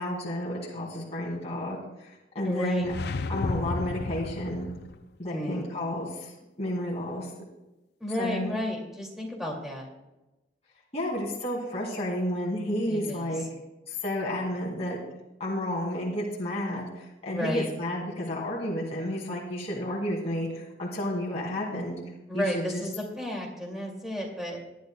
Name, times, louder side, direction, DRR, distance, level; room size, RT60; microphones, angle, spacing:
voice 1, 0.0-2.9 3.3-4.7 5.2-7.3 8.2-8.5 10.9-13.4 13.9-15.0 15.4-22.0 22.3-22.8, left 1 dB, 35° left, -4 dB, 2.3 m, -31 dB
voice 2, 2.4-2.9 5.3-5.8 8.0-9.9 12.9-13.3 17.3-17.7 22.3-24.6, left 1 dB, ahead, -1 dB, 2.3 m, -32 dB
sound 1, 2.8-5.0, left 3 dB, 60° left, 0.5 m, -33 dB
20.5 x 10.5 x 2.2 m, 1.0 s
head